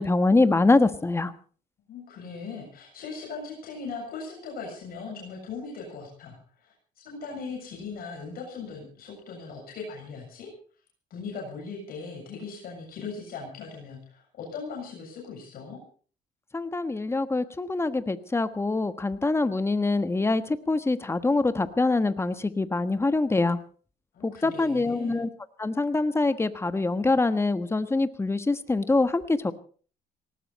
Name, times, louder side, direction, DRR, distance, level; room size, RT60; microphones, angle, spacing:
voice 1, 0.0-1.3 16.5-23.6 24.2-25.3 25.6-29.5, left 3 dB, 15° left, 11 dB, 1.3 m, -24 dB
voice 2, 1.9-10.5 11.1-15.8 24.1-25.2, left 4 dB, 60° left, -1 dB, 7.3 m, -39 dB
19.0 x 18.0 x 4.2 m, 0.42 s
cardioid pair, 110°, 17 cm